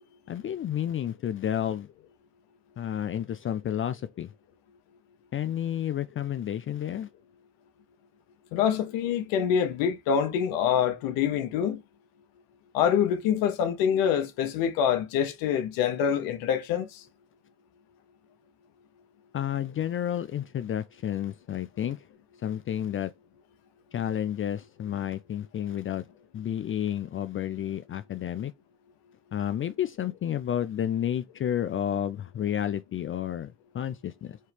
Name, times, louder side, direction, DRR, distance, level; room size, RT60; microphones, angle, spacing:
voice 1, 0.3-1.9 2.8-4.3 5.3-7.1 19.3-22.0 22.4-23.1 23.9-26.0 26.3-28.5 29.3-34.4, left 10 dB, 40° left, 0.4 m, -31 dB
voice 2, 8.5-11.8 12.7-16.9, left 8 dB, 85° left, 0.8 m, -25 dB
4.3 x 2.9 x 3.3 m
supercardioid pair, 65°, 34 cm